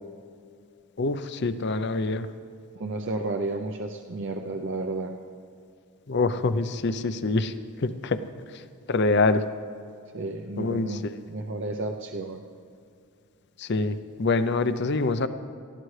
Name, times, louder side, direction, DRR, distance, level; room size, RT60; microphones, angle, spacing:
voice 1, 1.0-2.3 6.1-7.5 7.8-8.2 8.9-9.4 10.6-11.1 13.6-15.3, left 3 dB, 50° left, 12 dB, 0.5 m, -25 dB
voice 2, 2.7-5.1 10.1-12.4, right 2 dB, 55° right, 3 dB, 0.6 m, -32 dB
19.0 x 13.5 x 3.2 m, 2.4 s
head